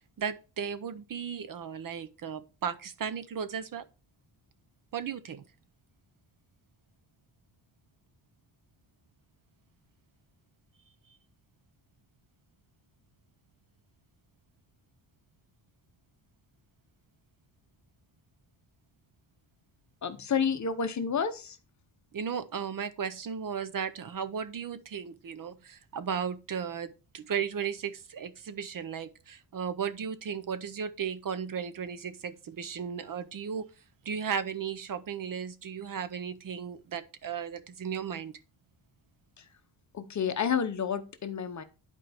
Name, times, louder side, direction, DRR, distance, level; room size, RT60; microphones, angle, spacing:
voice 1, 0.2-3.8 4.9-5.4 22.1-33.7 34.0-38.3, right 7 dB, 45° right, 0.6 m, -35 dB
voice 2, 20.0-21.6 39.4-39.5 39.9-41.6, left 7 dB, 40° left, 0.8 m, -30 dB
11.0 x 4.5 x 3.4 m
wide cardioid pair, 165°, 46 cm